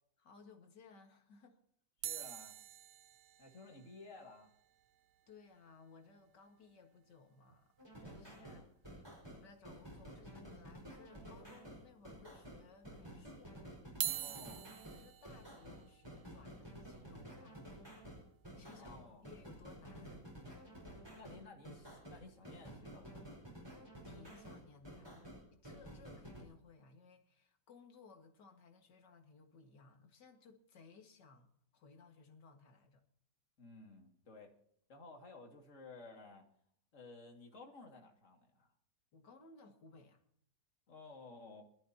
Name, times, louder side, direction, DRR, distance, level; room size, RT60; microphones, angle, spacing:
voice 1, 0.2-1.6 2.1-2.2 5.3-13.7 14.9-18.3 18.5-20.7 24.0-33.1 39.1-40.2, left 4 dB, 65° left, 2.4 m, -61 dB
voice 2, 2.0-2.6 3.4-4.5 8.3-8.7 14.2-14.7 18.8-19.2 21.2-23.4 33.6-34.5 34.9-36.4 36.9-38.7 40.9-41.6, left 3 dB, 45° left, 2.5 m, -55 dB
sound 1, 2.0-6.4 6.7-6.8 6.9-7.1 7.5-7.6 9.0-9.1 9.8-10.3 10.8-10.9 11.7-11.8 13.8-19.9 20.5-20.7, right 12 dB, 70° right, 1.3 m, -47 dB
sound 2, 7.8-26.4, right 1 dB, 10° right, 4.9 m, -52 dB
23.0 x 13.0 x 2.9 m
omnidirectional pair, 2.0 m